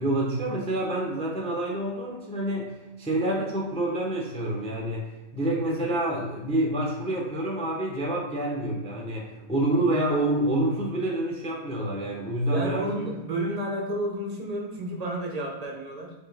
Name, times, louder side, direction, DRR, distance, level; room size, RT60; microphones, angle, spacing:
voice 1, 0.0-2.7 3.0-5.1 5.3-12.9, right 1 dB, 10° left, -2 dB, 0.4 m, -27 dB
voice 2, 12.5-16.1, right 1 dB, 40° right, 0 dB, 0.5 m, -31 dB
4.4 x 3.3 x 3.5 m, 1.1 s
omnidirectional pair, 1.6 m